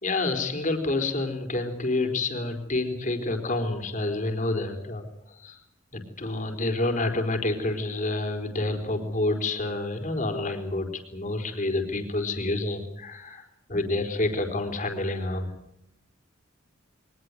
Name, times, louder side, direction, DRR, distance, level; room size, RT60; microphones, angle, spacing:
voice 1, 0.0-5.6 5.9-13.4 13.7-15.6, left 2 dB, 40° left, 5 dB, 4.2 m, -28 dB
23.0 x 19.5 x 8.1 m, 0.80 s
head